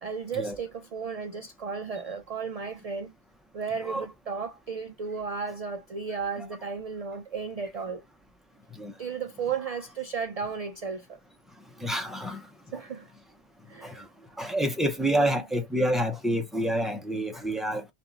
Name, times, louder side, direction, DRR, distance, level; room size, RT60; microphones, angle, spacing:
voice 1, 0.0-3.1 3.5-8.0 9.0-11.2 12.7-13.1 13.7-14.1 15.2-15.4, right 5 dB, 50° right, 0.4 m, -34 dB
voice 2, 11.8-12.5 12.7-12.8 13.8-14.1 14.4-17.9, right 1 dB, ahead, 0.6 m, -28 dB
4.0 x 2.9 x 3.9 m
omnidirectional pair, 1.1 m